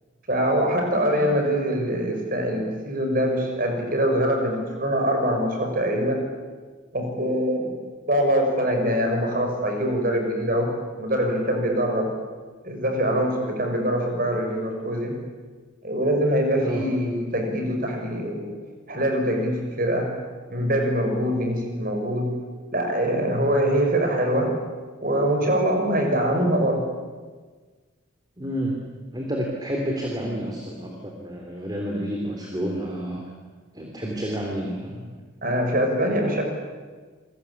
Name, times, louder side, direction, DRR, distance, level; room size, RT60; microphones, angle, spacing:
voice 1, 0.3-6.2 6.9-7.7 8.1-10.7 11.0-12.1 12.6-15.1 15.8-18.5 18.9-20.1 20.5-22.3 22.7-24.5 25.0-26.8 35.4-36.4, equal, 45° right, 3 dB, 6.4 m, -23 dB
voice 2, 0.9-1.3 16.6-16.9 28.4-28.8 29.1-33.2 33.7-35.1, equal, 20° right, 1 dB, 3.4 m, -30 dB
29.0 x 22.5 x 8.6 m, 1.4 s
head